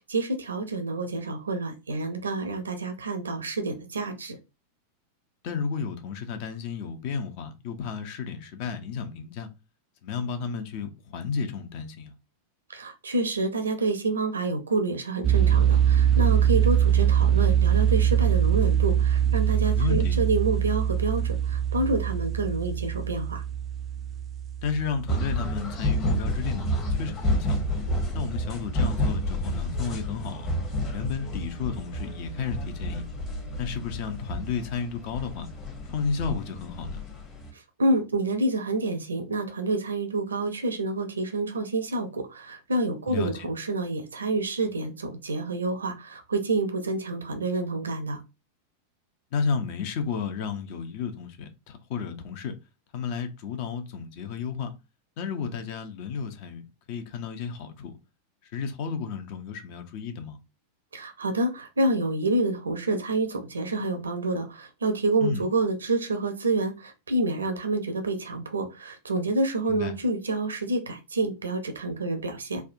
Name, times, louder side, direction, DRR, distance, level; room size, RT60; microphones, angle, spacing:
voice 1, 0.1-4.4 12.7-23.4 37.8-48.2 60.9-72.6, right 2 dB, 70° right, 0.6 m, -28 dB
voice 2, 5.4-9.5 10.0-12.1 19.8-20.2 24.6-27.6 28.1-30.5 30.9-33.0 33.6-35.5 35.9-37.0 43.1-43.5 49.3-52.5 52.9-54.7 55.2-57.9 58.4-60.4 65.2-65.5 69.7-69.9, left 6 dB, 45° left, 0.6 m, -32 dB
sound 1, 15.2-26.1, right 9 dB, 25° right, 0.3 m, -23 dB
sound 2, 25.1-37.5, equal, 25° left, 0.9 m, -30 dB
3.4 x 2.2 x 2.6 m
figure-of-eight pair, 90°, 0 cm